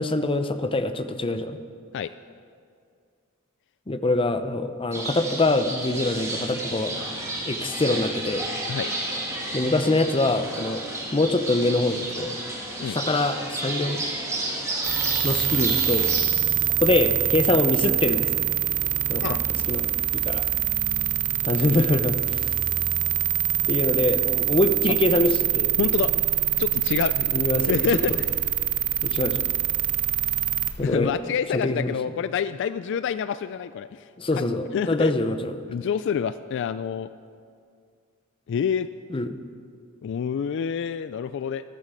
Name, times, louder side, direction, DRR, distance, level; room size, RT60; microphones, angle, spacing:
voice 1, 0.0-1.6 3.9-7.1 7.4-8.5 9.5-10.8 11.1-12.4 12.8-14.0 15.2-16.1 16.8-18.3 19.1-19.4 19.7-19.9 20.1-20.4 21.4-22.5 23.7-25.8 27.3-27.8 28.1-28.2 29.0-29.5 30.8-31.2 31.5-31.9 34.2-35.7 39.1-39.4, left 2 dB, 25° left, 9 dB, 0.7 m, -24 dB
sound 1, 4.9-16.2, right 1 dB, 15° right, 2.4 m, -31 dB
sound 2, 14.8-30.7, right 11 dB, 40° right, 0.8 m, -24 dB
voice 2, 19.1-19.4 25.8-26.1 26.6-27.2 27.7-28.1 30.8-34.1 34.7-35.1 35.7-37.1 38.5-38.9 40.0-41.6, left 7 dB, 60° left, 14 dB, 0.3 m, -27 dB
13.0 x 12.5 x 6.3 m, 2.2 s
head